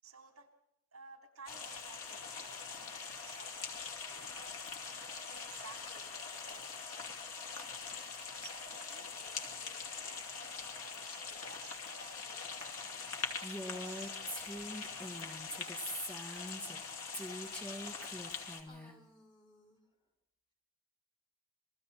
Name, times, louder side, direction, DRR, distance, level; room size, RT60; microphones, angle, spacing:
voice 1, 0.0-0.5 0.9-4.6 5.3-7.2 8.4-13.0 13.6-15.3, right 5 dB, 75° right, 4 dB, 3.5 m, -57 dB
sound 1, 1.5-18.6, left 5 dB, 75° left, 2.8 m, -43 dB
Female speech woman speaking, 13.4-16.8 17.1-18.9, equal, 5° left, 2.1 m, -43 dB
voice 2, 18.0-19.8, left 1 dB, 20° left, -2 dB, 4.5 m, -63 dB
28.5 x 22.0 x 4.3 m, 0.75 s
head